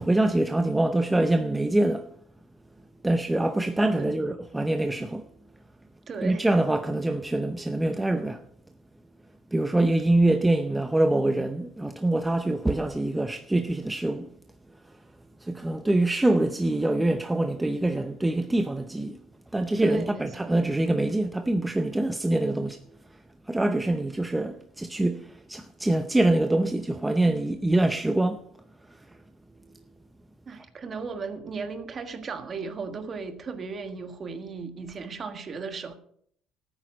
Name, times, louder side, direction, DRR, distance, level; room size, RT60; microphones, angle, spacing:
voice 1, 0.0-2.1 3.0-5.3 6.2-8.4 9.5-14.3 15.4-19.2 19.5-22.8 23.5-28.4, right 1 dB, 10° right, 0.7 m, -24 dB
voice 2, 6.1-6.5 19.8-20.6 30.5-36.0, right 4 dB, 30° right, 1.6 m, -36 dB
12.5 x 9.4 x 6.4 m
cardioid pair, 130°, 0 cm